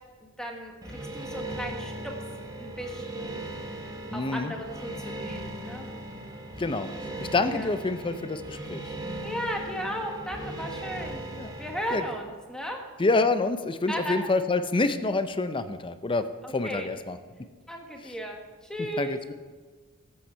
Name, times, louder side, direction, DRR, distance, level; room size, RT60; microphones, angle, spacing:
voice 1, 0.2-2.2 2.6-3.4 4.1-5.9 7.4-7.7 9.2-11.2 11.6-12.8 13.9-14.2 16.4-16.9 17.7-19.2, equal, 5° left, 1 dB, 1.4 m, -35 dB
sound 1, 0.8-12.2, right 1 dB, 15° right, 1.1 m, -38 dB
voice 2, 4.1-4.5 6.6-6.9 7.2-8.8 11.4-11.5 11.9-12.0 13.0-17.2 19.0-19.2, left 3 dB, 25° left, 10 dB, 0.5 m, -27 dB
13.5 x 8.7 x 4.5 m, 1.5 s
head